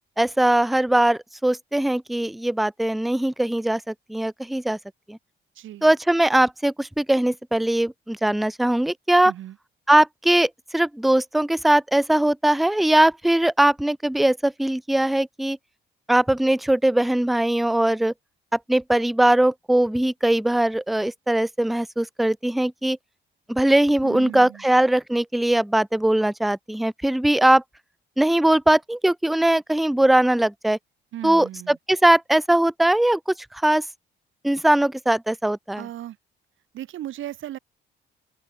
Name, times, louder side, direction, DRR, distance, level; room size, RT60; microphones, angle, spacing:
voice 1, 0.2-4.8 5.1-5.2 5.8-9.3 9.9-15.6 16.1-18.1 18.5-23.0 23.5-27.6 28.2-30.8 31.2-33.2 33.6-33.8 34.4-35.8, right 1 dB, ahead, 0.3 m, -20 dB
voice 2, 5.6-5.9 9.2-9.6 24.0-24.6 31.1-31.8 35.7-36.2 36.7-37.6, right 13 dB, 80° right, 3.6 m, -36 dB
open air
cardioid pair, 90°, 20 cm